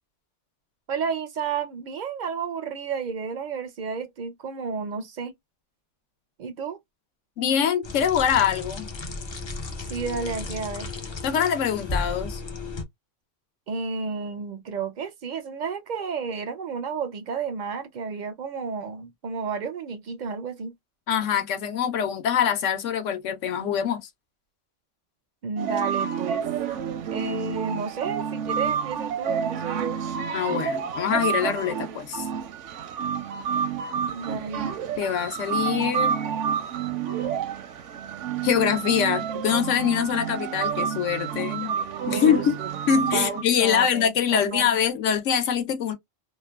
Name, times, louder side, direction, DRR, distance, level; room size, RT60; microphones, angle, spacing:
voice 1, 0.9-5.3 6.4-6.8 9.8-10.9 13.7-20.7 25.4-26.4 27.1-30.0 34.1-34.7 42.1-42.7 43.1-44.7, right 5 dB, 65° right, 0.4 m, -31 dB
voice 2, 7.4-8.9 11.2-12.4 21.1-24.1 30.3-32.2 35.0-36.2 38.4-41.7 42.1-42.5 42.9-45.9, left 8 dB, 85° left, 1.0 m, -24 dB
sound 1, 7.8-12.8, left 3 dB, 45° left, 0.3 m, -34 dB
sound 2, 25.6-43.4, right 7 dB, 80° right, 0.9 m, -29 dB
3.0 x 2.1 x 2.2 m
omnidirectional pair, 1.2 m